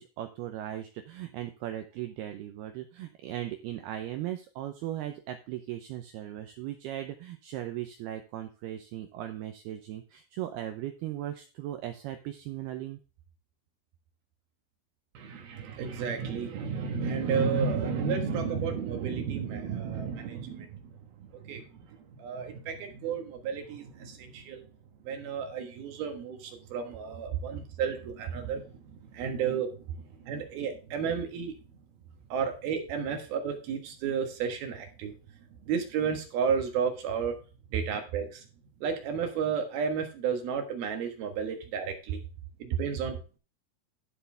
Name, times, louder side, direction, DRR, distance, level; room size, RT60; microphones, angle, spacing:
voice 1, 0.0-13.0 27.3-27.4, right 12 dB, 90° right, 7 dB, 2.2 m, -38 dB
voice 2, 15.1-20.9 21.3-21.6 22.1-24.6 25.0-28.6 29.1-29.8 30.2-31.5 32.3-35.1 35.7-37.3 37.7-38.4 38.8-42.2 42.6-43.2, right 6 dB, 65° right, 5 dB, 2.9 m, -32 dB
12.5 x 7.0 x 3.4 m, 0.34 s
omnidirectional pair, 5.5 m